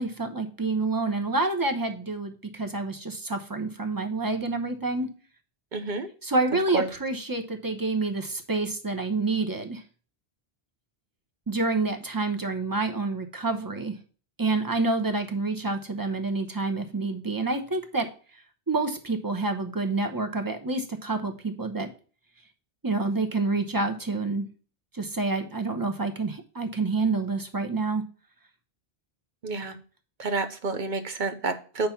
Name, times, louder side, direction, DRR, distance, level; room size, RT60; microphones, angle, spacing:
voice 1, 0.0-5.1 6.2-9.8 11.5-13.9 14.4-18.1 18.7-21.9 22.8-24.5 24.9-28.0, right 3 dB, 20° right, 6 dB, 0.9 m, -28 dB
voice 2, 5.7-6.1 6.7-6.9 29.4-29.8 30.2-31.9, right 3 dB, 50° right, 8 dB, 0.9 m, -29 dB
8.5 x 3.5 x 5.8 m, 0.40 s
omnidirectional pair, 1.1 m